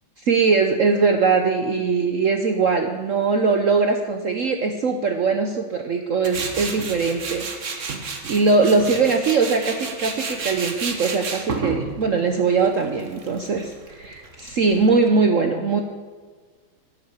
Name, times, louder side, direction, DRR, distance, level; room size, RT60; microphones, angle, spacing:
voice 1, 0.3-15.8, right 4 dB, 65° right, 5 dB, 0.8 m, -21 dB
Tools, 6.2-15.1, right 4 dB, 45° right, 1.3 m, -32 dB
11.5 x 8.6 x 8.0 m, 1.5 s
omnidirectional pair, 2.3 m